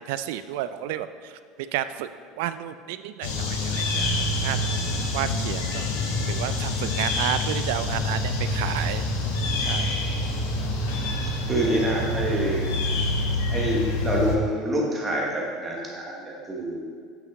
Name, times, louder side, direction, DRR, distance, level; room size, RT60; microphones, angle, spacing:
voice 1, 0.0-1.3 1.7-2.1 2.4-4.1 4.4-4.6 5.1-5.9 6.2-9.1 9.7-10.0, right 12 dB, 70° right, 12 dB, 0.3 m, -31 dB
sound 1, 3.2-14.4, left 2 dB, 80° left, 1.0 m, -26 dB
voice 2, 11.5-12.7 13.5-16.8, right 1 dB, 10° right, -3 dB, 1.1 m, -26 dB
8.1 x 5.9 x 3.5 m, 2.1 s
cardioid pair, 180°, 0 cm